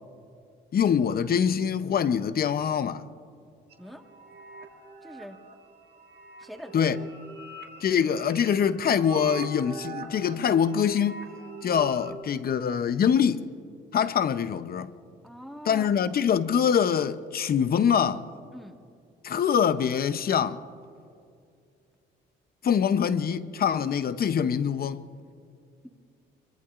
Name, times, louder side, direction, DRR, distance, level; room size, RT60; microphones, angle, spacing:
voice 1, 0.7-3.1 6.7-7.0 7.8-11.2 11.6-13.4 13.9-14.9 15.7-18.2 19.2-20.6 22.6-25.0, left 8 dB, 50° left, 0.7 m, -24 dB
sound 1, 3.7-12.1, right 4 dB, 55° right, 1.8 m, -43 dB
voice 2, 5.0-5.4 6.4-6.9 15.2-15.9 18.5-18.7, equal, ahead, 1.5 m, -43 dB
25.0 x 23.0 x 2.5 m
cardioid pair, 90°, 20 cm